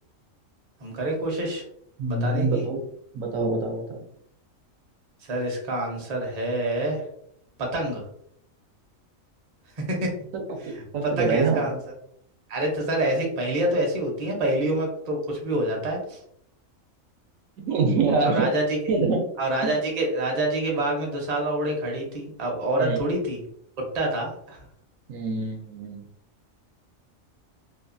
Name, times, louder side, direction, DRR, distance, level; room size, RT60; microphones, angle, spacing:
voice 1, 0.8-1.6 2.1-2.6 5.3-7.0 7.6-8.0 9.8-10.1 11.0-11.8 12.5-16.2 18.2-18.8 19.4-23.4 23.8-24.6, right 1 dB, 40° right, -1 dB, 0.6 m, -26 dB
voice 2, 2.0-2.8 3.1-4.0 10.3-11.7 17.6-18.5 18.9-19.2 19.6-19.7 22.8-23.0 25.1-26.0, right 4 dB, 80° right, 2 dB, 1.0 m, -25 dB
2.8 x 2.3 x 2.5 m, 0.69 s
omnidirectional pair, 1.4 m